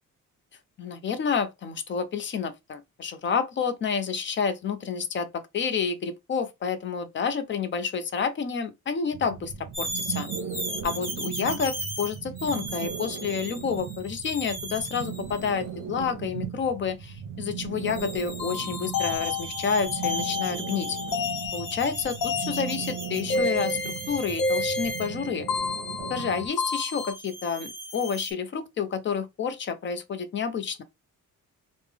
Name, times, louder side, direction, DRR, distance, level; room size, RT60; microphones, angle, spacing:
voice 1, 0.8-10.3 10.8-21.0 21.5-25.5 26.1-30.8, left 6 dB, 35° left, 0.4 m, -29 dB
sound 1, 9.1-26.5, right 9 dB, 65° right, 0.7 m, -38 dB
sound 2, 9.7-15.6 17.7-25.1 26.6-28.3, right 1 dB, 10° right, 1.4 m, -38 dB
sound 3, 18.4-27.1, left 3 dB, 85° left, 0.9 m, -31 dB
3.3 x 2.0 x 3.4 m
cardioid pair, 170°, 32 cm